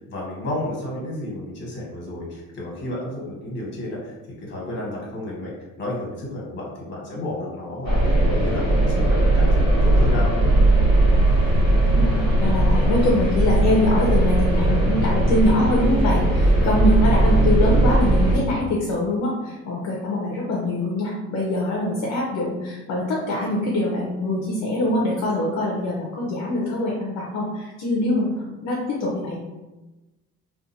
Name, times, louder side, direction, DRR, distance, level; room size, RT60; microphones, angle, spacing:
voice 1, 0.1-4.1 4.4-5.5 5.8-10.3, left 1 dB, 35° left, -4 dB, 1.2 m, -31 dB
sound 1, 7.8-18.4, right 1 dB, 35° right, 1.5 m, -18 dB
sound 2, 11.1-18.6, right 1 dB, 85° right, 0.8 m, -34 dB
voice 2, 12.4-29.4, left 1 dB, 60° left, -3 dB, 0.7 m, -24 dB
2.5 x 2.4 x 4.1 m, 1.1 s
cardioid pair, 155°, 30 cm